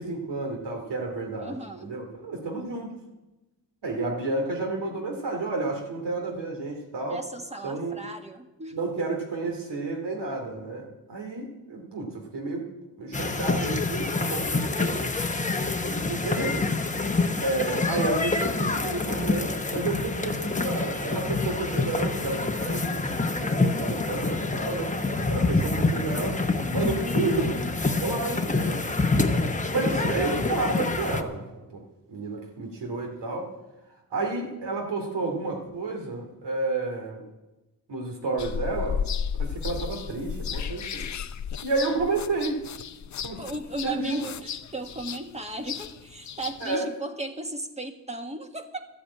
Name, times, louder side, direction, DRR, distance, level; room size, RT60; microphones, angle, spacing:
voice 1, 0.0-2.9 3.8-7.2 7.6-8.0 8.7-12.6 13.0-15.1 15.8-16.7 17.4-23.0 23.4-24.9 25.3-26.4 26.7-27.6 27.9-28.8 29.7-31.4 31.7-31.8 32.1-33.5 34.1-37.2 37.9-39.0 39.4-41.1 41.6-42.6 43.2-43.4 43.8-44.3 46.6-46.9, right 3 dB, 75° right, 1 dB, 2.8 m, -31 dB
voice 2, 1.4-1.9 7.1-9.0 43.4-48.9, right 2 dB, 15° right, 5 dB, 1.6 m, -36 dB
sound 1, 13.1-31.2, left 3 dB, 15° left, 1.0 m, -27 dB
sound 2, 38.4-46.8, left 7 dB, 45° left, 0.6 m, -34 dB
13.0 x 8.7 x 8.6 m, 1.0 s
cardioid pair, 80°, 43 cm